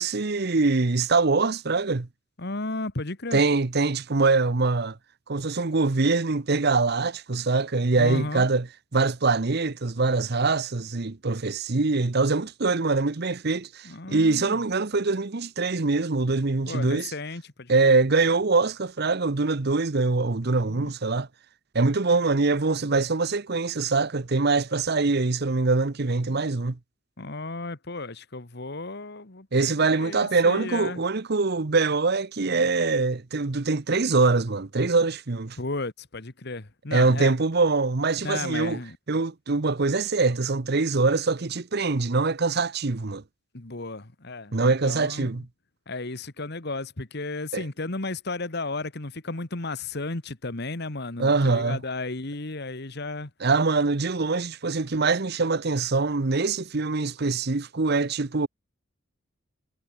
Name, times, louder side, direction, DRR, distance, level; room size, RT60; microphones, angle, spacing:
voice 1, 0.0-2.1 3.3-5.0 5.3-8.6 8.9-17.1 17.7-21.3 21.7-26.8 29.5-35.6 36.9-38.8 39.1-43.2 44.5-45.4 47.5-47.6 51.2-51.8 53.4-58.5, right 3 dB, 55° right, 0.9 m, -23 dB
voice 2, 2.4-3.4 8.0-8.5 13.8-14.6 16.7-17.9 20.7-20.9 26.3-26.4 27.2-31.0 35.6-37.3 38.2-39.0 43.5-45.3 45.9-53.3, left 2 dB, 55° left, 1.7 m, -34 dB
head